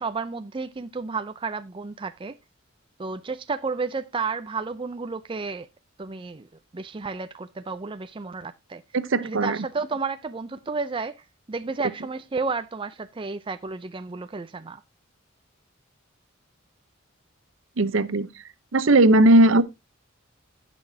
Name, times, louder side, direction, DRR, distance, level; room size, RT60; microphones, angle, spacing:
voice 1, 0.0-2.3 3.0-5.7 6.0-6.5 6.7-8.8 9.2-14.8, right 4 dB, 25° right, 0.4 m, -32 dB
voice 2, 8.9-9.6 17.8-18.3 18.7-19.6, right 2 dB, 70° right, 0.8 m, -18 dB
16.0 x 6.0 x 2.7 m
head